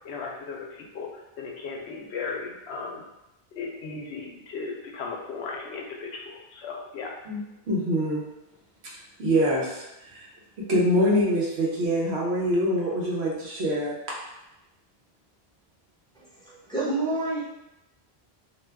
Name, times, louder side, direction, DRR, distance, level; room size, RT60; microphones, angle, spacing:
voice 1, 0.0-1.1 1.4-3.1 3.5-7.1, left 4 dB, 85° left, 0 dB, 0.9 m, -36 dB
voice 2, 7.2-8.2 9.2-10.3 10.6-14.0, equal, 80° right, -4 dB, 1.1 m, -25 dB
voice 3, 16.1-17.4, right 2 dB, 5° left, -9 dB, 0.9 m, -29 dB
2.6 x 2.2 x 3.4 m, 0.94 s
omnidirectional pair, 1.1 m